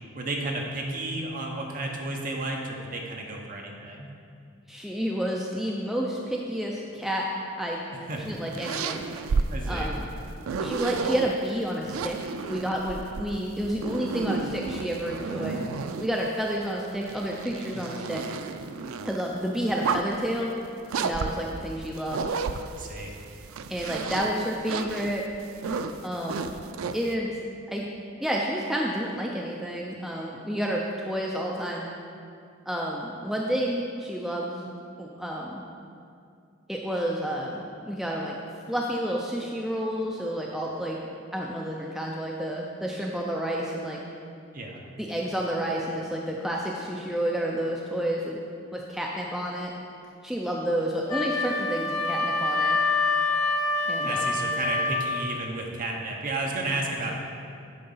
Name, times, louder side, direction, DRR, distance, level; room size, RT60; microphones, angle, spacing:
voice 1, 0.1-4.1 7.9-8.4 9.5-9.9 22.7-23.1 44.5-44.8 54.0-57.1, right 2 dB, 40° right, 0 dB, 0.9 m, -32 dB
voice 2, 4.7-7.2 7.6-7.8 8.2-9.0 9.7-10.0 10.6-12.2 12.5-15.6 16.0-18.2 19.0-20.5 21.0-22.3 23.7-25.2 26.0-26.5 26.9-27.3 27.7-27.8 28.2-31.9 32.7-34.7 35.0-35.6 36.7-38.3 38.7-41.0 41.3-44.0 45.0-48.4 48.7-49.7 50.2-52.8 53.9-54.3, equal, ahead, -3 dB, 0.4 m, -30 dB
sound 1, 8.1-11.3 11.8-16.3 16.8-19.2 19.7-20.3 20.9-23.0 23.4-27.1, right 5 dB, 75° right, 0.4 m, -32 dB
Wind instrument woodwind instrument, 51.1-55.1, left 3 dB, 35° left, 1.6 m, -26 dB
8.9 x 3.8 x 5.5 m, 2.4 s
head